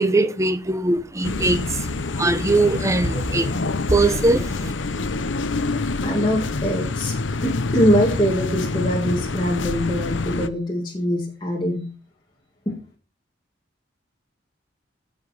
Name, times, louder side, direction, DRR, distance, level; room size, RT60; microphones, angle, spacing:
voice 1, 0.0-1.8 2.1-3.5 3.9-4.7, right 2 dB, 15° right, 0.9 m, -21 dB
sound 1, 1.2-10.5, left 3 dB, 85° left, 0.8 m, -26 dB
voice 2, 6.0-7.1 7.4-11.9 12.6-12.8, equal, 25° left, 1.7 m, -23 dB
15.5 x 5.3 x 4.2 m
head